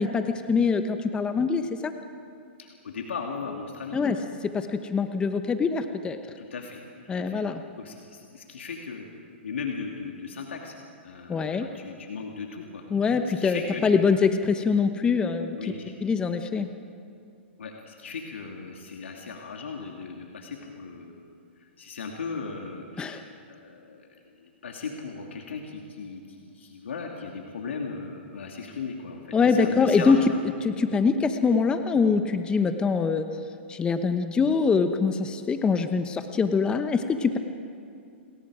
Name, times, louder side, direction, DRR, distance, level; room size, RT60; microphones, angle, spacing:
voice 1, 0.0-1.9 3.9-4.2 4.5-6.2 7.1-7.6 11.3-11.7 12.9-15.6 16.0-16.7 23.0-23.2 29.3-30.2 30.6-33.2 33.7-37.4, left 5 dB, 15° left, 8 dB, 1.0 m, -24 dB
voice 2, 2.6-4.0 6.4-6.8 7.2-7.4 7.8-9.1 9.4-10.8 11.0-13.8 15.6-15.9 17.6-21.3 21.6-30.3, left 5 dB, 85° left, 1 dB, 2.6 m, -37 dB
29.0 x 21.5 x 5.0 m, 2.5 s
hypercardioid pair, 135°, 6 cm